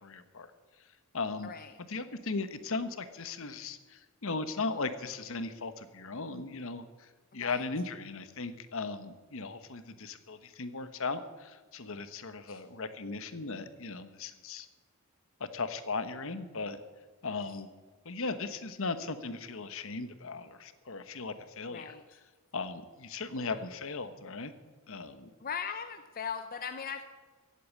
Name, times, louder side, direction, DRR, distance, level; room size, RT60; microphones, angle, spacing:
voice 1, 0.0-0.5 1.1-1.5 1.9-3.8 4.2-6.8 7.3-14.7 15.5-16.8 17.2-17.7 18.0-21.9 22.5-24.5 24.9-25.3, left 3 dB, 65° left, 11 dB, 1.1 m, -37 dB
voice 2, 1.4-1.8 7.3-7.6 12.5-12.6 21.7-22.2 23.3-23.7 25.4-27.0, left 6 dB, 40° left, 8 dB, 0.7 m, -39 dB
15.5 x 8.6 x 8.5 m, 1.3 s
head